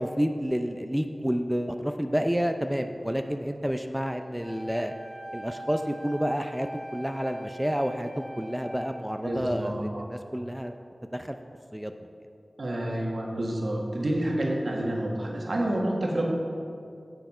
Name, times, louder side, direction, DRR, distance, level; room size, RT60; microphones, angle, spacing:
voice 1, 0.0-4.9 5.3-10.7 11.1-11.4 11.7-11.9, equal, 5° right, 6 dB, 0.4 m, -29 dB
Wind instrument woodwind instrument, 4.4-9.5, right 1 dB, 50° left, 2.4 m, -42 dB
voice 2, 9.2-10.1 12.6-16.3, right 1 dB, 70° right, -1 dB, 1.5 m, -29 dB
7.9 x 7.3 x 5.5 m, 2.5 s
wide cardioid pair, 50°, 0 cm